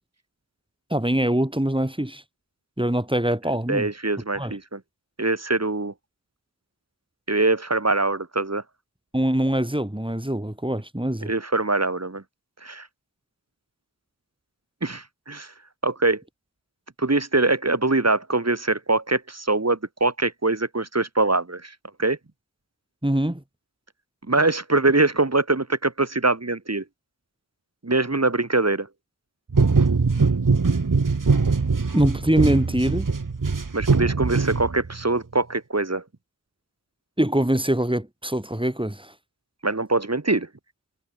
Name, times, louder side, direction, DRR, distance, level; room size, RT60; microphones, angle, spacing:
voice 1, 0.9-2.2 2.8-3.9 4.3-4.6 9.1-11.3 23.0-23.4 31.9-33.1 37.2-39.1, right 1 dB, 15° right, 6.2 m, -23 dB
voice 2, 3.7-4.8 5.2-5.9 7.3-8.6 11.2-12.2 12.6-12.9 14.8-15.5 15.8-16.2 17.0-22.2 24.3-26.8 27.8-28.9 33.7-36.0 39.6-40.5, right 2 dB, 45° right, 3.4 m, -23 dB
sound 1, 29.5-35.0, right 4 dB, 65° right, 1.9 m, -22 dB
wide cardioid pair, 40°, 35 cm